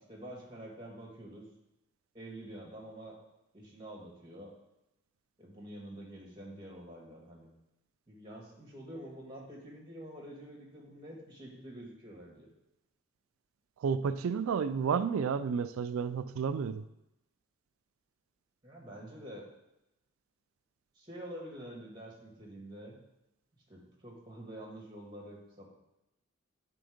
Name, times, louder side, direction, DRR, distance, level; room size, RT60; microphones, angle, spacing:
voice 1, 0.0-1.5 2.1-3.2 3.5-4.5 5.4-7.5 8.1-12.5 18.6-19.4 20.9-23.0 23.5-25.7, right 1 dB, 20° right, 1.8 m, -47 dB
voice 2, 13.8-16.8, right 6 dB, 80° right, 0.3 m, -31 dB
7.8 x 3.8 x 5.1 m
head